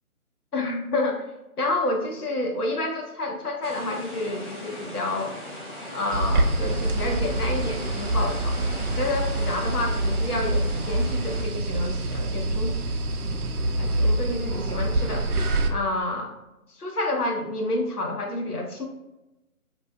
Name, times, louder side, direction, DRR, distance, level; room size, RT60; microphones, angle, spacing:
voice 1, 0.5-1.2 1.6-5.4 5.9-12.7 13.8-15.3 15.7-16.3 16.7-18.8, left 2 dB, 90° left, 1 dB, 0.8 m, -29 dB
sound 1, 3.6-11.4, equal, 35° left, 0.6 m, -39 dB
sound 2, 6.1-15.7, right 2 dB, 80° right, 0.6 m, -25 dB
2.4 x 2.2 x 3.3 m, 0.97 s
figure-of-eight pair, 150°, 44 cm